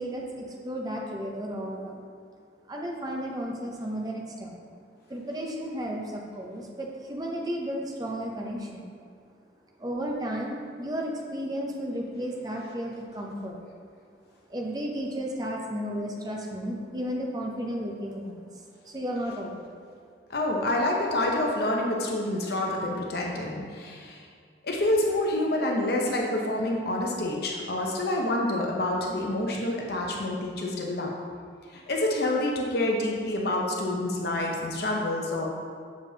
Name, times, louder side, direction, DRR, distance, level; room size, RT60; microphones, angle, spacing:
voice 1, 0.0-1.9 2.7-4.6 5.1-8.9 9.8-13.6 14.5-19.7, equal, 20° right, -1 dB, 0.6 m, -33 dB
voice 2, 20.3-24.2 24.6-31.1 31.7-35.5, left 1 dB, 55° left, -1 dB, 0.7 m, -27 dB
6.9 x 5.2 x 2.8 m, 2.1 s
head